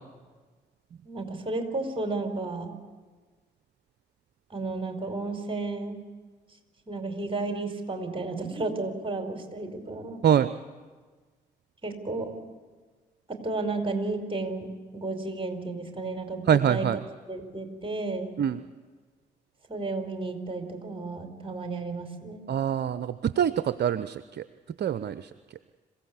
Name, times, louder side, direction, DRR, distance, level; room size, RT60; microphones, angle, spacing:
voice 1, 1.0-2.8 4.5-6.0 6.9-10.2 11.8-12.3 13.3-16.9 17.3-18.4 19.7-22.4, right 3 dB, 25° right, 5 dB, 4.9 m, -33 dB
voice 2, 16.5-17.0 18.4-18.6 22.5-24.2 24.8-25.1, right 9 dB, 55° right, 14 dB, 0.8 m, -24 dB
26.5 x 16.0 x 8.6 m, 1.4 s
hypercardioid pair, 40°, 21 cm